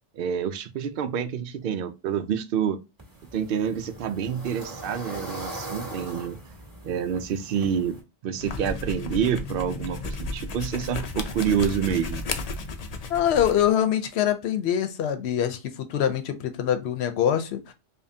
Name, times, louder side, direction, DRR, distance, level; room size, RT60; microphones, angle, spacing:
voice 1, 0.2-2.8 3.3-6.4 6.8-12.2, right 8 dB, 60° right, 0.6 m, -28 dB
sound 1, 3.0-8.0, right 2 dB, 15° right, 1.8 m, -40 dB
sound 2, 8.3-13.7, left 3 dB, 50° left, 0.4 m, -33 dB
voice 2, 13.1-17.7, left 10 dB, 65° left, 0.9 m, -24 dB
5.1 x 2.3 x 2.7 m
omnidirectional pair, 1.2 m